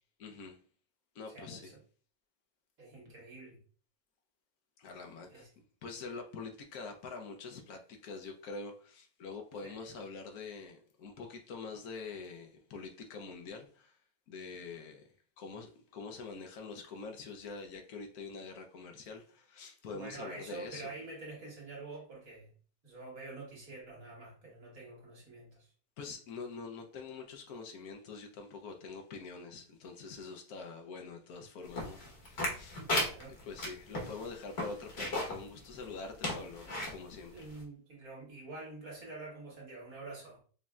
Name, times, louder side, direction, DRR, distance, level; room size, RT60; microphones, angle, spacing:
voice 1, 0.2-0.6 1.1-1.7 4.8-5.5 5.8-14.0 14.3-15.1 15.4-20.9 26.0-32.8 33.4-37.5, left 4 dB, 70° left, 1.1 m, -45 dB
voice 2, 1.3-1.8 2.8-3.6 5.3-5.5 9.6-10.0 19.9-22.5 22.8-25.7 32.7-33.4 37.3-40.4, right 3 dB, 60° right, 1.9 m, -47 dB
sound 1, 31.8-35.4 35.8-35.9 36.2-36.9 37.5-37.6, left 1 dB, 45° left, 1.3 m, -35 dB
5.2 x 2.6 x 2.3 m
omnidirectional pair, 1.7 m